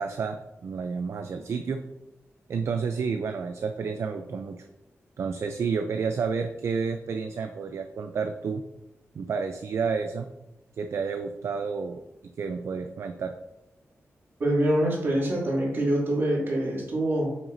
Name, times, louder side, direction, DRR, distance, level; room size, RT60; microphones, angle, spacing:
voice 1, 0.0-1.8 2.5-4.6 5.2-8.6 9.1-10.3 10.8-12.0 12.4-13.3, right 5 dB, 65° right, 6 dB, 0.4 m, -30 dB
voice 2, 14.4-17.4, right 1 dB, 50° right, -4 dB, 2.5 m, -25 dB
9.0 x 6.0 x 2.6 m, 0.92 s
wide cardioid pair, 175°, 5 cm